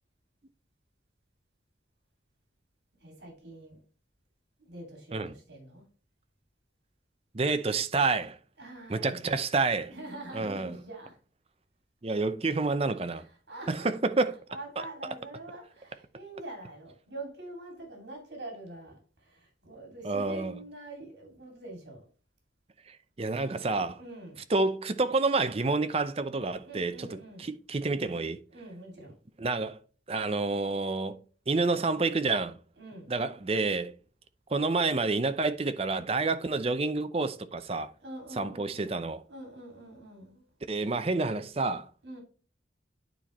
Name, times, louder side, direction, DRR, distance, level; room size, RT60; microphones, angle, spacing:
voice 1, 3.0-3.8 4.7-5.8 8.6-9.4 9.9-11.2 13.5-13.9 14.5-22.1 24.0-24.4 26.6-27.5 28.5-29.1 32.8-33.1 38.0-39.0 39.3-40.4 42.0-42.2, right 2 dB, 70° right, 2.4 m, -45 dB
voice 2, 7.3-8.4 8.9-9.9 10.3-10.8 12.0-13.2 13.7-14.4 14.8-14.9 20.0-20.6 22.9-24.0 24.5-28.4 29.4-29.8 30.1-31.2 31.5-32.6 33.1-33.9 34.5-37.9 38.4-39.2 40.7-41.9, right 3 dB, 35° right, 0.6 m, -29 dB
9.4 x 4.4 x 3.1 m
head